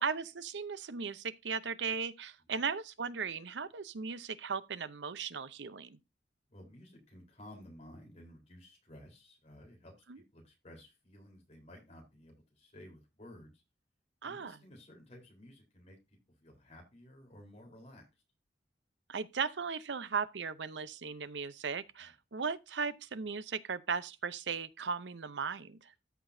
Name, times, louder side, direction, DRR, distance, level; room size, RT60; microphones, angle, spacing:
voice 1, 0.0-6.0 10.1-10.2 14.2-14.6 19.1-25.9, right 5 dB, 80° right, 0.7 m, -37 dB
voice 2, 6.5-13.6 14.2-18.1 22.0-22.1, left 1 dB, 35° left, 3.9 m, -55 dB
13.5 x 6.1 x 2.7 m
head